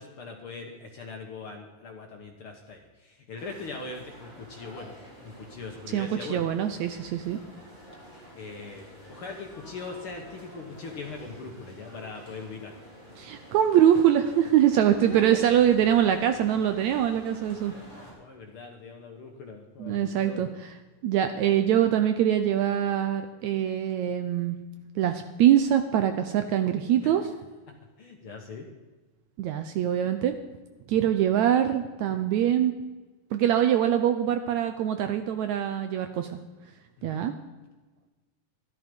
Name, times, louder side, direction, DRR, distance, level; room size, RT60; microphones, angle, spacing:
voice 1, 0.0-6.5 8.1-12.8 15.0-15.4 18.2-20.4 27.0-27.1 28.0-28.7 37.0-37.2, left 4 dB, 60° left, 2 dB, 1.5 m, -41 dB
sound 1, 3.4-18.1, equal, 10° right, 5.3 m, -48 dB
voice 2, 5.9-7.4 13.2-17.7 19.8-20.7 21.0-24.6 25.0-27.3 29.4-30.4 30.9-32.7 33.3-36.4 37.0-37.3, right 10 dB, 75° right, 8 dB, 1.7 m, -23 dB
13.0 x 12.0 x 5.3 m, 1.2 s
omnidirectional pair, 3.8 m